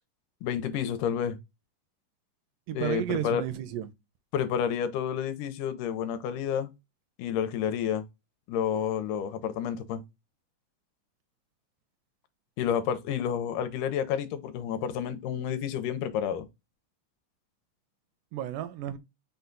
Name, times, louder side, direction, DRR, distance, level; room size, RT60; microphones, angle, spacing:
voice 1, 0.4-1.4 2.7-3.4 4.3-6.7 7.2-8.1 8.5-10.0 12.6-16.5, left 8 dB, 80° left, 2.1 m, -30 dB
voice 2, 2.7-3.9 18.3-19.0, right 11 dB, 80° right, 2.0 m, -32 dB
5.5 x 2.2 x 3.7 m
omnidirectional pair, 3.8 m